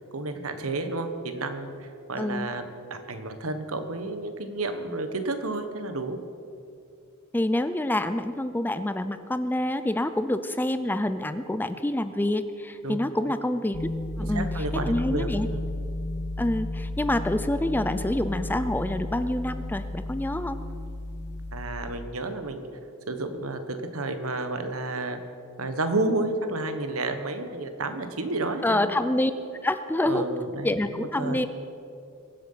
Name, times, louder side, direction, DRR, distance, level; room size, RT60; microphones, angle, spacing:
voice 1, 0.1-6.2 12.8-13.3 14.3-15.7 21.5-22.7 23.1-25.2 25.6-28.9 30.0-31.5, right 2 dB, 75° right, 8 dB, 1.3 m, -31 dB
voice 2, 2.2-2.5 7.3-13.9 14.2-14.5 14.7-15.5 16.4-20.6 28.6-29.3 29.6-30.3 30.6-31.5, left 1 dB, 10° left, 11 dB, 0.4 m, -27 dB
sound 1, 13.7-21.7, left 1 dB, 50° left, 1.7 m, -33 dB
22.5 x 7.7 x 5.7 m, 2.5 s
head